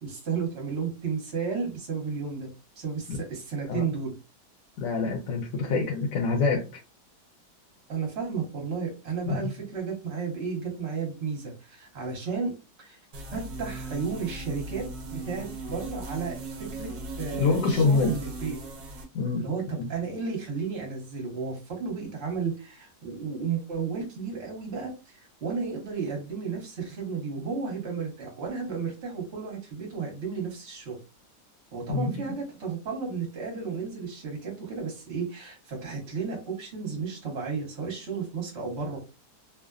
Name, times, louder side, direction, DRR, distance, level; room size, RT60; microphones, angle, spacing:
voice 1, 0.0-2.5 2.8-4.1 5.5-5.8 7.9-12.5 12.8-13.0 13.3-16.9 17.2-18.6 19.4-31.0 31.7-39.0, right 5 dB, 45° right, 0 dB, 1.3 m, -33 dB
voice 2, 4.8-6.8 9.3-9.5 17.4-18.2 19.1-19.4 19.8-19.9 31.9-32.1, left 4 dB, 80° left, 1 dB, 1.2 m, -26 dB
sound 1, 13.1-19.0, right 2 dB, 65° right, 1.0 m, -38 dB
3.0 x 2.1 x 2.3 m, 0.29 s
omnidirectional pair, 1.8 m